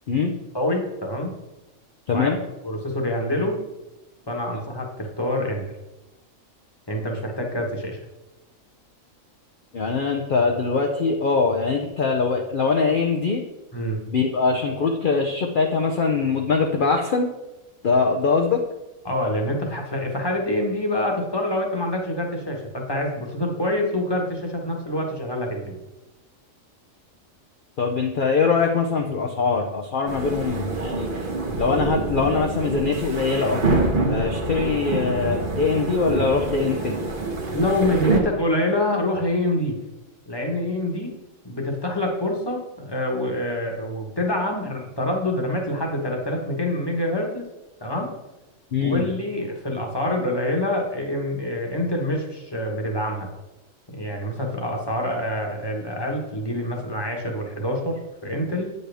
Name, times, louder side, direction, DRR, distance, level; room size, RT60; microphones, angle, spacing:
voice 1, 0.5-1.3 2.1-2.3 2.6-3.6 4.3-5.6 6.9-8.0 13.7-14.0 19.0-25.8 37.5-39.7 40.3-41.1 41.4-47.5 47.8-48.1 48.8-53.3 53.9-58.7, left 1 dB, 20° left, 1 dB, 1.3 m, -26 dB
voice 2, 2.1-2.4 9.7-13.4 14.1-17.3 17.8-18.6 27.8-31.2 31.6-33.6 34.1-36.9 48.7-49.1, left 4 dB, 50° left, 2 dB, 0.7 m, -22 dB
sound 1, 30.1-38.2, right 3 dB, 40° right, 1.1 m, -26 dB
9.1 x 6.6 x 3.4 m, 1.0 s
omnidirectional pair, 1.4 m